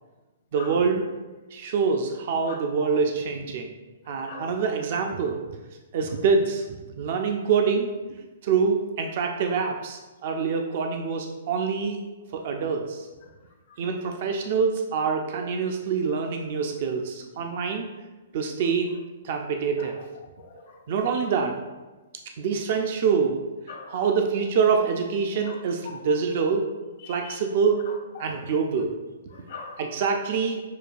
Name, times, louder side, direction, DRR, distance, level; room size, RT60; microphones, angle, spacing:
voice 1, 0.5-1.1 1.5-3.7 4.1-5.4 5.9-6.6 7.0-7.9 8.4-12.0 12.3-13.1 13.8-17.9 18.3-18.9 19.2-20.0 20.9-21.6 22.4-23.4 23.9-26.7 27.1-27.8 28.2-28.9 29.8-30.6, right 5 dB, 55° right, 3 dB, 0.4 m, -25 dB
voice 2, 2.5-2.9 4.1-4.6 12.6-12.7 19.8-19.9 20.4-20.8 23.7-24.1 25.4-25.6 25.8-26.0 27.0-27.4 27.9-28.5 29.3-29.8, left 5 dB, 60° left, 2 dB, 0.8 m, -42 dB
6.4 x 2.2 x 2.5 m, 1.2 s
hypercardioid pair, 125°, 0 cm